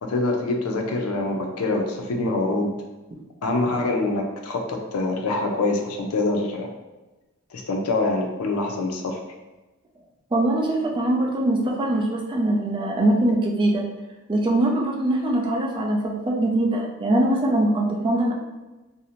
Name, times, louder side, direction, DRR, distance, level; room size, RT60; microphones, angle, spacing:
voice 1, 0.0-2.7 3.4-6.7 7.5-9.2, left 2 dB, 80° left, 3 dB, 0.4 m, -25 dB
voice 2, 10.3-13.9 14.3-16.0 16.3-18.3, right 1 dB, 20° right, -1 dB, 0.4 m, -22 dB
2.6 x 2.0 x 2.8 m, 1.1 s
head